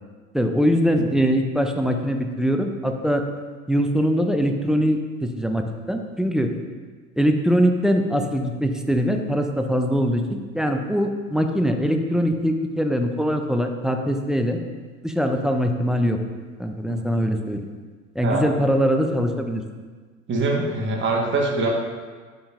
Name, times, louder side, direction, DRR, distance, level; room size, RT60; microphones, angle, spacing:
voice 1, 0.3-3.2 3.7-6.5 7.2-14.6 15.0-16.2 16.6-17.6 18.2-19.6, equal, ahead, 4 dB, 0.4 m, -22 dB
voice 2, 20.3-21.7, right 3 dB, 25° right, 0 dB, 1.4 m, -23 dB
11.0 x 5.3 x 2.5 m, 1.5 s
figure-of-eight pair, 70°, 44 cm